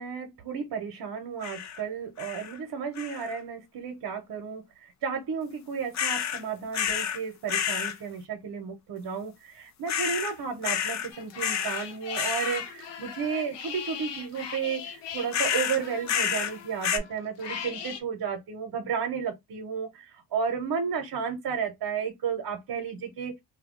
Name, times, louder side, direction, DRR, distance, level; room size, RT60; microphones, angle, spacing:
voice 1, 0.0-4.6 5.0-23.3, right 6 dB, 60° right, 0.8 m, -33 dB
sound 1, 1.4-1.8 2.2-2.6 3.0-3.4 5.9-6.4 6.7-7.2 7.5-7.9 9.9-10.3 10.6-11.1 11.4-11.9 12.1-12.6 15.3-16.5 16.8-17.0, left 8 dB, 45° left, 0.5 m, -29 dB
sound 2, 11.1-18.0, left 7 dB, 80° left, 0.8 m, -39 dB
2.2 x 2.1 x 3.6 m
cardioid pair, 70°, 42 cm